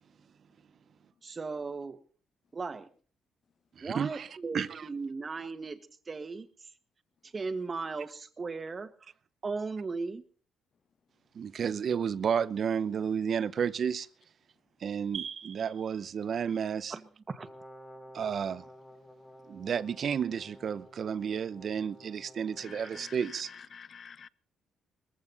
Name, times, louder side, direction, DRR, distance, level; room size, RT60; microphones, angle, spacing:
voice 1, 1.2-2.0 2.5-2.9 3.8-5.8 6.1-6.5 7.2-9.1 9.4-10.2 16.9-17.0 17.3-17.5, right 4 dB, 35° right, 1.6 m, -37 dB
voice 2, 3.8-4.3 4.5-4.9 11.3-14.1 14.8-17.0 18.1-18.6 19.5-23.5, right 7 dB, 55° right, 0.8 m, -32 dB
Brass instrument, 17.3-23.1, equal, 10° left, 3.1 m, -52 dB
voice 3, 22.6-24.3, left 7 dB, 50° left, 0.7 m, -48 dB
20.5 x 15.0 x 4.0 m
cardioid pair, 90°, 0 cm